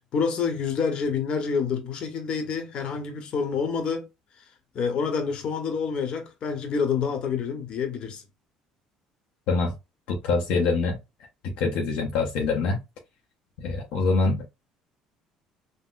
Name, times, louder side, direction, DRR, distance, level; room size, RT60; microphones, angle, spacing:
voice 1, 0.0-4.1 4.7-8.2, left 6 dB, 55° left, 0.9 m, -27 dB
voice 2, 10.1-11.0 11.4-12.8 13.6-14.5, left 3 dB, 75° left, 0.6 m, -24 dB
3.7 x 2.0 x 2.4 m
cardioid pair, 100°, 2 cm